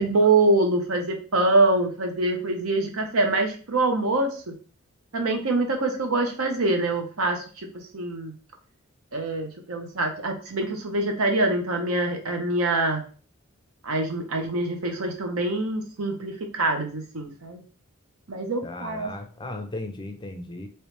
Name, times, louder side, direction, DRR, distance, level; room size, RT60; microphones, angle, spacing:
voice 1, 0.0-4.5 5.1-7.4 7.9-8.3 9.1-13.0 13.8-17.6 18.3-19.1, right 2 dB, 80° right, 4 dB, 0.8 m, -24 dB
voice 2, 18.6-20.7, left 2 dB, 20° left, 6 dB, 0.4 m, -36 dB
3.1 x 3.0 x 3.2 m, 0.39 s
head